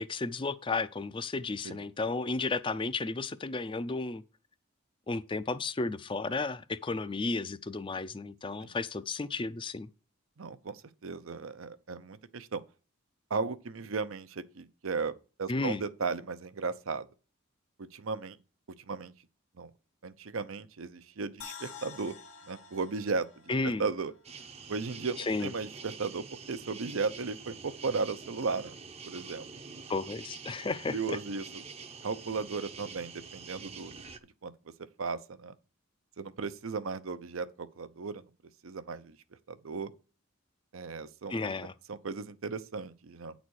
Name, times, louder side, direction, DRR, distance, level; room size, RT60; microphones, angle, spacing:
voice 1, 0.0-4.2 5.1-9.9 15.5-15.8 23.5-23.9 25.2-25.5 29.9-31.2 41.3-41.7, left 3 dB, 25° left, 0.4 m, -33 dB
voice 2, 10.4-12.6 13.3-15.1 15.4-17.1 17.8-18.4 18.9-19.1 19.6-19.7 20.0-22.1 22.5-23.3 23.8-24.1 24.7-28.8 29.0-29.5 30.9-31.4 32.0-33.9 34.4-34.5 35.0-35.5 36.2-38.2 38.6-39.2 39.5-39.9 40.7-41.3 41.9-43.3, right 4 dB, 75° right, 0.7 m, -35 dB
sound 1, 21.4-24.6 24.9-25.0, left 6 dB, 85° left, 1.3 m, -49 dB
sound 2, 24.2-34.2, right 5 dB, 30° right, 0.7 m, -46 dB
9.4 x 4.1 x 6.3 m
head